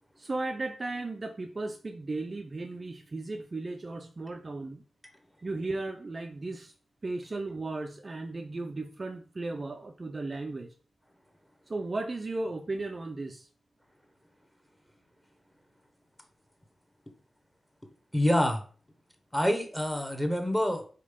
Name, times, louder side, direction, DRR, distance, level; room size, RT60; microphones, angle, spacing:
voice 1, 0.2-4.8 5.4-6.7 7.0-10.7 11.7-13.5, right 2 dB, 30° right, 5 dB, 0.5 m, -35 dB
voice 2, 18.1-18.6 19.3-20.9, equal, 5° left, 5 dB, 1.1 m, -26 dB
5.2 x 4.4 x 5.2 m, 0.40 s
wide cardioid pair, 170°, 0 cm